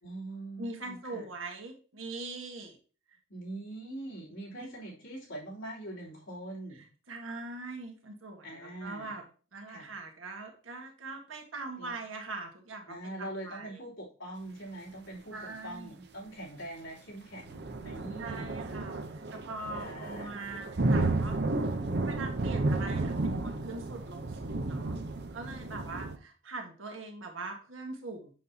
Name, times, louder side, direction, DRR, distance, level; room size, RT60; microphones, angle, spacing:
voice 1, 0.0-1.2 3.3-6.8 8.4-9.1 9.7-9.9 11.8-11.9 12.9-15.4 15.6-18.6 19.7-20.4, right 1 dB, 75° left, -4 dB, 3.2 m, -43 dB
voice 2, 0.6-2.8 3.1-3.2 4.6-4.7 6.7-9.2 9.5-13.8 15.3-15.9 18.2-21.4 22.0-25.0 25.3-28.3, right 3 dB, 80° right, 2 dB, 1.5 m, -42 dB
sound 1, 17.4-26.1, right 2 dB, 55° right, 0.7 m, -32 dB
7.4 x 6.3 x 2.8 m, 0.37 s
head